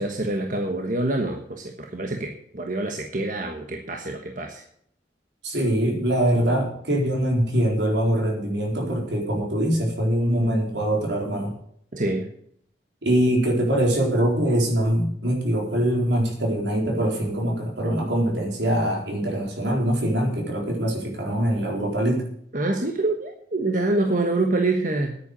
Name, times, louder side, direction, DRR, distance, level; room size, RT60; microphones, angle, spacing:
voice 1, 0.0-4.6 11.9-12.3 22.5-25.2, right 2 dB, 45° right, 3 dB, 1.3 m, -26 dB
voice 2, 5.4-11.5 13.0-22.2, right 1 dB, 80° right, 0 dB, 4.2 m, -23 dB
10.5 x 9.2 x 6.7 m, 0.66 s
head